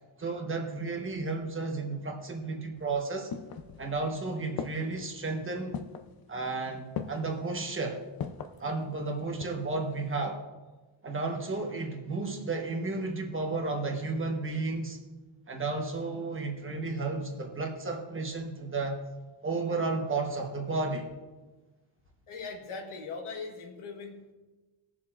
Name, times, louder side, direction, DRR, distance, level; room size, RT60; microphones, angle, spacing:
voice 1, 0.2-3.3 3.8-5.8 6.3-8.0 8.6-10.4 11.0-15.0 15.5-19.0 19.4-21.1, right 3 dB, 25° right, 2 dB, 1.1 m, -33 dB
sound 1, 2.8-4.1 4.6-5.1 5.7-6.1 6.9-7.4 8.2-8.6 9.1-9.7 10.0-10.1, left 7 dB, 50° left, 0.5 m, -38 dB
voice 2, 22.3-24.3, left 4 dB, 90° left, 2 dB, 1.6 m, -40 dB
19.5 x 7.3 x 2.5 m, 1.2 s
wide cardioid pair, 170°, 48 cm